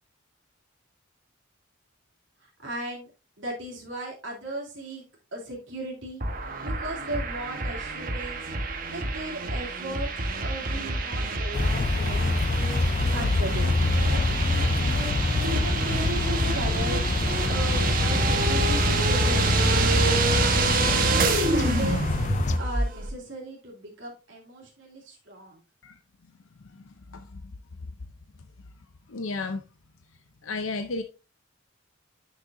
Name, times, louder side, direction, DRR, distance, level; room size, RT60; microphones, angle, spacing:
voice 1, 2.4-3.1 3.4-5.0 5.3-6.2 6.6-8.4 8.9-10.1 10.4-13.9 14.5-15.0 15.4-17.1 17.5-20.2 20.8-22.2 22.6-25.6, right 1 dB, 65° right, 2.8 m, -36 dB
sound 1, 6.2-23.1, right 2 dB, 40° right, 1.2 m, -26 dB
sound 2, 11.5-22.6, left 3 dB, 35° left, 0.3 m, -27 dB
voice 2, 26.6-27.4 29.1-29.6 30.4-31.0, left 3 dB, 75° left, 0.7 m, -34 dB
10.0 x 6.3 x 2.6 m
head